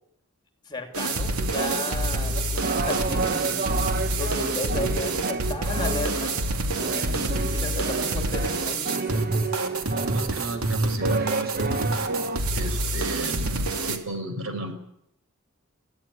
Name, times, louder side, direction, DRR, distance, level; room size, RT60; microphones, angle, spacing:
voice 1, 0.6-6.3 6.9-9.5, left 2 dB, 20° left, 5 dB, 3.0 m, -35 dB
sound 1, 0.9-14.0, right 2 dB, 85° right, 2.7 m, -27 dB
sound 2, 1.4-12.4, right 3 dB, 40° right, 1.1 m, -31 dB
voice 2, 9.9-11.8 12.5-14.7, right 2 dB, 70° right, 7 dB, 5.0 m, -34 dB
23.5 x 15.0 x 9.9 m, 0.76 s
head